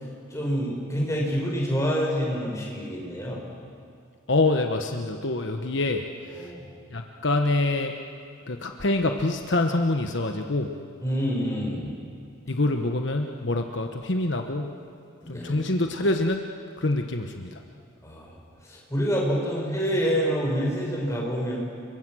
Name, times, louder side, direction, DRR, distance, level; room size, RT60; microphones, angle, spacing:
voice 1, 0.3-3.4 6.3-6.7 11.0-11.9 15.2-15.6 18.0-18.4 18.7-21.6, equal, 15° left, -2 dB, 5.5 m, -27 dB
voice 2, 4.3-6.0 6.3-6.5 6.9-7.9 8.5-10.7 12.5-14.7 15.3-16.4 16.8-17.6, left 2 dB, 65° left, 5 dB, 1.2 m, -25 dB
30.0 x 23.5 x 6.4 m, 2.5 s
head